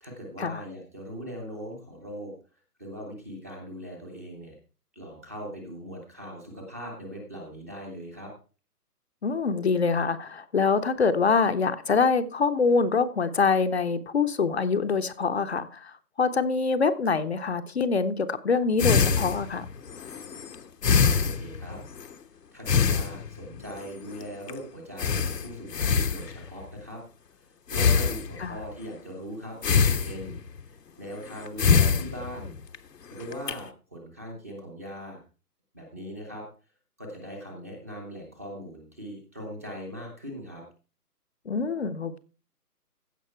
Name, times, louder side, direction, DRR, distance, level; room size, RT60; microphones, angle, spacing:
voice 1, 0.0-2.3 2.8-4.6 4.9-8.3 21.2-21.8 22.5-27.0 27.3-27.5 27.7-29.6 30.0-30.4 30.6-32.6 33.1-35.2 35.7-36.5 37.0-40.6, equal, 10° right, 0.7 m, -40 dB
voice 2, 9.2-19.7 28.4-28.6 41.5-42.2, left 5 dB, 45° left, 0.7 m, -25 dB
sound 1, 18.8-22.1 22.7-23.6 24.1-24.2 24.5-24.6 25.0-26.6 27.7-28.7 29.6-30.6 31.3-32.8 33.2-33.5, left 6 dB, 85° left, 1.2 m, -24 dB
15.5 x 5.3 x 4.4 m
hypercardioid pair, 160°, 47 cm